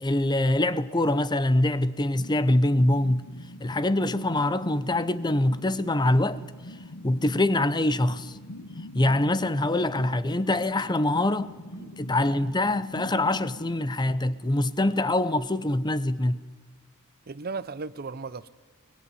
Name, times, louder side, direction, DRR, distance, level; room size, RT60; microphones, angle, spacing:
voice 1, 0.0-3.2 3.6-6.4 7.0-8.4 8.9-11.5 12.0-16.4, left 1 dB, 20° left, 0.7 m, -24 dB
sound 1, 2.1-14.8, left 1 dB, 85° left, 1.5 m, -44 dB
voice 2, 11.8-12.5 17.3-18.5, right 4 dB, 45° right, 0.7 m, -37 dB
22.5 x 20.5 x 9.8 m
head